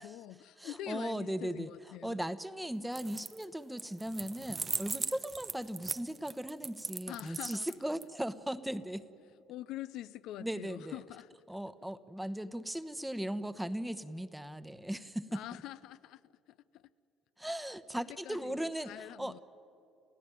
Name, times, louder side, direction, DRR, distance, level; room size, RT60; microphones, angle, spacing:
voice 1, 0.0-2.2 7.1-7.7 9.5-11.3 15.3-16.3 16.7-16.8 18.2-19.4, left 13 dB, 75° left, 0.5 m, -45 dB
voice 2, 0.6-1.7 2.0-9.0 10.4-11.0 11.5-15.4 17.4-19.4, right 1 dB, 5° right, 1.0 m, -38 dB
sound 1, 2.9-3.4 3.8-8.0, right 5 dB, 30° right, 0.7 m, -39 dB
28.5 x 15.5 x 9.1 m
supercardioid pair, 90°, 0 cm